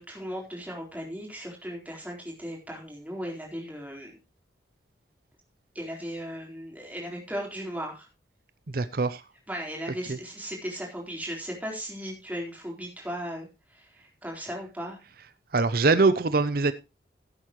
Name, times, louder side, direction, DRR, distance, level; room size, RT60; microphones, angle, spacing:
voice 1, 0.0-4.2 5.7-8.1 9.5-15.0, equal, 10° right, 3.9 m, -37 dB
voice 2, 8.7-9.2 10.1-10.2 15.5-16.7, right 3 dB, 50° right, 0.6 m, -23 dB
16.5 x 8.4 x 3.0 m
head